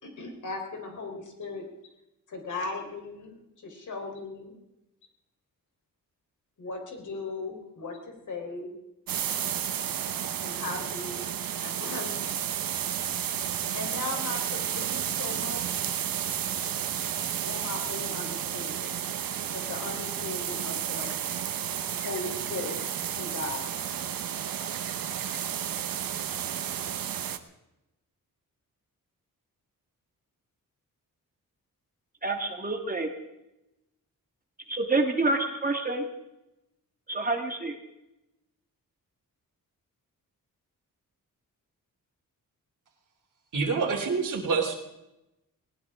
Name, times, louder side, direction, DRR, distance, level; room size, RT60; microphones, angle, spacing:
voice 1, 0.0-1.7 2.3-4.5 6.6-8.7 10.2-11.2 11.6-12.1 13.7-15.9 17.4-19.0 19.5-21.1 21.7-22.8 23.2-23.6, left 3 dB, 60° left, 2 dB, 4.0 m, -38 dB
sound 1, 9.1-27.4, right 9 dB, 80° right, 1.1 m, -32 dB
voice 2, 32.2-33.1 34.7-36.1 37.1-37.8, right 2 dB, 25° right, 4 dB, 1.7 m, -27 dB
voice 3, 43.5-44.8, right 5 dB, 65° right, 3 dB, 3.0 m, -26 dB
19.5 x 19.5 x 3.7 m, 0.93 s
wide cardioid pair, 150°, 34 cm